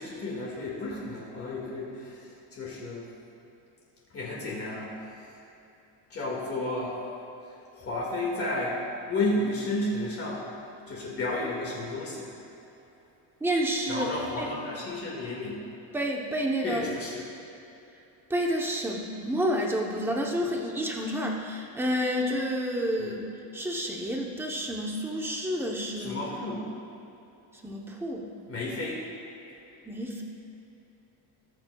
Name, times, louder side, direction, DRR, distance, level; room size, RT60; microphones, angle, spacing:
voice 1, 0.0-3.0 4.1-5.0 6.1-7.0 7.7-8.8 9.1-10.5 10.9-12.3 13.9-15.6 16.6-17.3 23.0-23.1 26.0-26.7 28.5-29.1, left 2 dB, 30° left, -5 dB, 1.9 m, -32 dB
voice 2, 13.4-14.1 14.4-14.5 15.9-16.8 18.3-26.2 27.6-28.3 29.9-30.2, equal, 5° right, 0 dB, 0.8 m, -29 dB
20.0 x 7.3 x 2.3 m, 3.0 s
cardioid pair, 165°, 44 cm